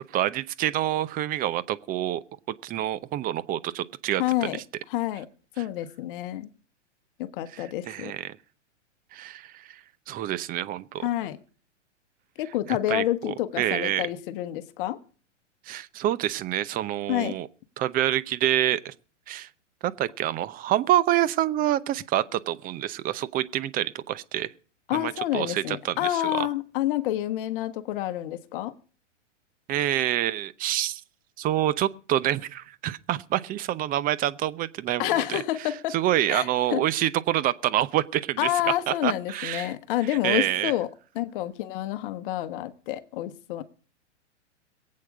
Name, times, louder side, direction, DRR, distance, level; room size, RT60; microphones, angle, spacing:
voice 1, 0.1-4.5 7.5-8.4 9.1-9.8 10.1-11.0 12.7-14.0 15.7-17.5 17.8-18.9 19.3-19.5 19.8-24.5 24.9-26.5 29.7-31.0 31.4-35.4 35.9-38.5 38.9-39.7 40.2-40.7, right 13 dB, 25° right, 0.7 m, -27 dB
voice 2, 4.2-4.6 4.9-5.3 5.6-6.5 7.2-8.1 11.0-11.4 12.4-15.0 17.1-17.4 24.9-28.7 35.0-36.0 36.3-36.8 38.4-40.9 41.1-43.6, left 14 dB, 45° left, 1.2 m, -28 dB
22.5 x 8.6 x 5.0 m
hypercardioid pair, 110°, 36 cm